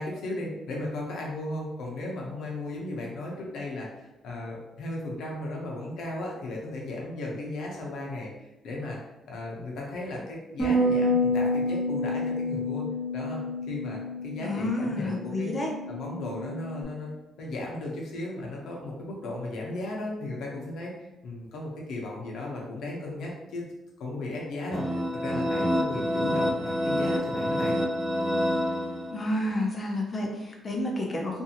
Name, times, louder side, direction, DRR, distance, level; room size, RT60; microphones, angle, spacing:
voice 1, 0.0-9.0 9.3-12.9 13.1-15.6 15.9-17.1 17.4-23.7 24.0-24.9 25.1-27.8, left 2 dB, 75° left, -2 dB, 0.8 m, -36 dB
Bass guitar, 10.6-16.8, left 1 dB, 15° left, 0.9 m, -29 dB
voice 2, 14.4-15.7 29.1-31.4, left 1 dB, 35° left, 1 dB, 0.7 m, -30 dB
sound 1, 24.7-29.4, equal, 25° right, 0.5 m, -27 dB
2.6 x 2.6 x 2.8 m, 0.95 s
cardioid pair, 90°, 0 cm